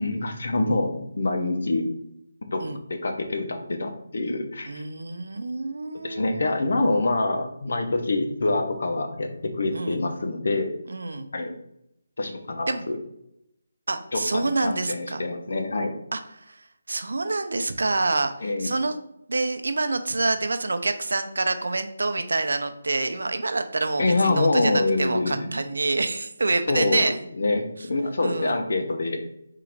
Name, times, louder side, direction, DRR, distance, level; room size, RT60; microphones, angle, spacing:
voice 1, 0.0-1.9 2.4-2.6 2.9-4.8 6.0-10.7 11.3-11.5 12.2-13.0 14.1-15.9 18.4-18.7 24.0-25.5 26.7-27.0 27.4-29.2, left 2 dB, 60° left, 5 dB, 0.7 m, -25 dB
voice 2, 4.7-6.6 9.7-10.0 10.9-11.3 12.7-12.8 13.9-15.2 16.1-19.0 19.3-27.2 28.2-28.6, right 3 dB, 80° right, 8 dB, 0.5 m, -27 dB
3.7 x 2.5 x 4.5 m, 0.78 s
hypercardioid pair, 170°, 0 cm